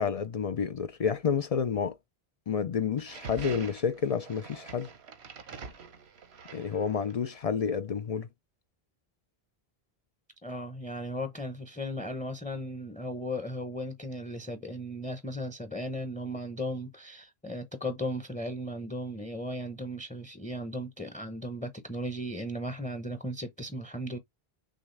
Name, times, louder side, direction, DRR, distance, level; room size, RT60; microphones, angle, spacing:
voice 1, 0.0-2.0 2.5-4.9 6.5-8.3, left 6 dB, 55° left, 0.4 m, -29 dB
sound 1, 3.0-7.3, right 5 dB, 85° right, 1.2 m, -45 dB
voice 2, 10.4-24.2, equal, 10° left, 0.7 m, -36 dB
6.5 x 2.4 x 3.3 m
omnidirectional pair, 1.1 m